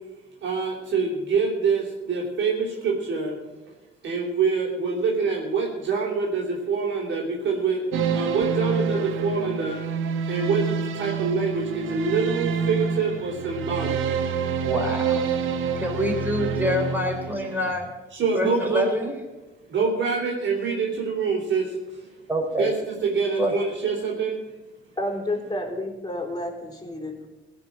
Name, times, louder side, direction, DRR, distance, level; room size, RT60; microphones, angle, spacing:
voice 1, 0.4-3.3 4.0-9.8 10.3-14.0 18.1-18.9 19.7-22.1 22.6-24.4, right 5 dB, 70° right, -2 dB, 3.6 m, -25 dB
sound 1, 7.9-17.7, right 6 dB, 85° right, 1.2 m, -27 dB
voice 2, 14.6-15.2 15.8-17.9 18.3-19.2 22.3-22.7 23.4-23.5, equal, 10° right, 2 dB, 3.8 m, -26 dB
voice 3, 25.0-27.3, left 1 dB, 20° left, 2 dB, 3.8 m, -30 dB
16.5 x 6.2 x 8.8 m, 1.1 s
cardioid pair, 90°, 20 cm